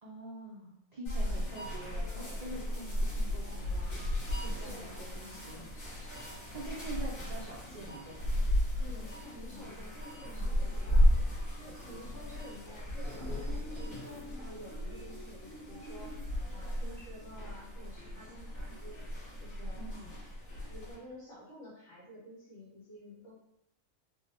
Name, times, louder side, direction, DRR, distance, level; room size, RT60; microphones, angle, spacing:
voice 1, 0.0-4.0 4.4-5.7 6.5-8.3 18.5-18.7 19.8-20.1, right 1 dB, 90° right, -3 dB, 0.3 m, -45 dB
sound 1, 1.0-20.9, equal, 80° left, 1.9 m, -34 dB
voice 2, 8.8-11.1 11.6-19.0 19.4-19.9 20.7-23.3, equal, 60° left, -8 dB, 1.9 m, -51 dB
4.4 x 2.0 x 2.9 m, 0.87 s
omnidirectional pair, 1.4 m